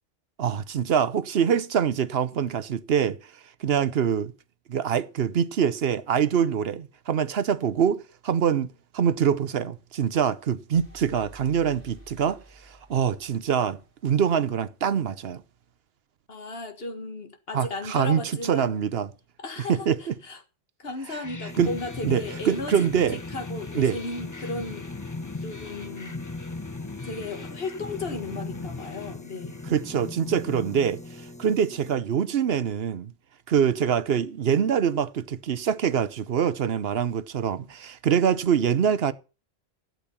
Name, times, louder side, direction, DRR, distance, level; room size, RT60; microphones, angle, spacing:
voice 1, 0.4-3.2 3.6-4.3 4.7-8.7 8.9-15.4 17.5-19.1 19.7-20.1 21.1-21.2 21.6-21.7 22.0-23.2 23.7-24.0 29.7-33.1 33.5-39.1, right 8 dB, 75° right, 1.0 m, -24 dB
sound 1, 10.7-14.5, right 1 dB, 15° right, 3.8 m, -51 dB
voice 2, 16.3-18.9 19.4-20.4 20.8-22.7 23.1-24.9 25.4-26.2 27.0-29.6, left 3 dB, 70° left, 1.9 m, -35 dB
sound 2, 21.2-31.8, left 3 dB, 20° left, 0.6 m, -38 dB
sound 3, 21.5-32.0, left 2 dB, 5° left, 1.4 m, -47 dB
12.5 x 8.2 x 5.7 m
omnidirectional pair, 1.1 m